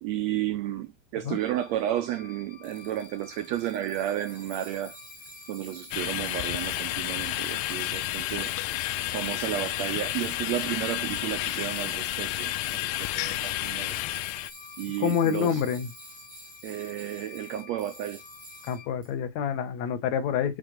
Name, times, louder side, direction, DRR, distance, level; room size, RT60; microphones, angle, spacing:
voice 1, 0.0-5.0 5.5-8.5 9.1-13.9 14.8-15.6 16.6-18.2, right 12 dB, 80° right, 1.6 m, -32 dB
sound 1, 1.3-18.9, left 7 dB, 35° left, 1.4 m, -52 dB
Tools, 2.6-19.1, right 1 dB, 5° left, 1.0 m, -47 dB
sound 2, 5.9-14.5, left 16 dB, 90° left, 2.2 m, -31 dB
voice 2, 15.0-15.9 18.7-20.6, left 8 dB, 65° left, 2.1 m, -27 dB
8.0 x 4.4 x 5.1 m
omnidirectional pair, 3.8 m